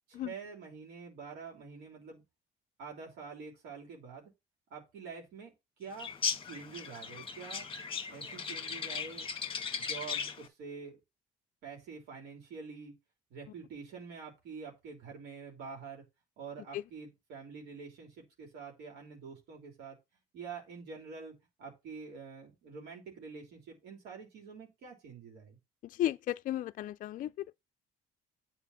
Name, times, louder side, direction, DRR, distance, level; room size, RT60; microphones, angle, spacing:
voice 1, 0.1-2.2 2.8-4.3 4.7-5.5 5.8-6.1 6.4-7.7 8.1-9.3 9.7-11.0 11.6-12.9 13.3-16.0 16.4-20.0 20.3-25.6, right 5 dB, 85° right, 3.2 m, -46 dB
sound 1, 6.0-10.5, left 6 dB, 30° left, 1.4 m, -37 dB
voice 2, 25.8-27.3, left 12 dB, 55° left, 0.4 m, -34 dB
8.3 x 4.3 x 5.6 m
cardioid pair, 110°, 17 cm